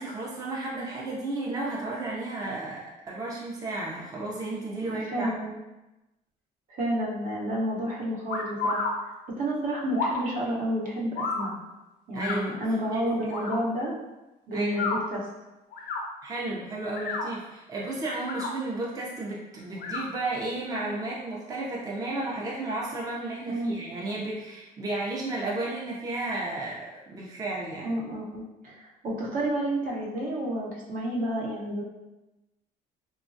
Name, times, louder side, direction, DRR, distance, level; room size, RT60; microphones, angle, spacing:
voice 1, 0.0-5.3 12.1-12.6 12.9-13.0 14.5-14.9 16.2-27.9, right 2 dB, 20° right, -4 dB, 0.5 m, -33 dB
voice 2, 4.9-5.5 6.7-8.9 9.4-11.6 12.1-13.9 14.5-15.3 23.5-23.8 27.8-31.8, right 1 dB, 55° right, -3 dB, 0.8 m, -30 dB
sound 1, 8.3-8.9 9.9-10.2 11.2-11.4 12.2-12.4 13.3-13.6 14.7-15.0 15.7-16.0 16.8-17.3 18.1-18.5 19.8-20.0, left 3 dB, 80° left, 0.6 m, -30 dB
2.9 x 2.2 x 2.6 m, 1.0 s
cardioid pair, 110°, 17 cm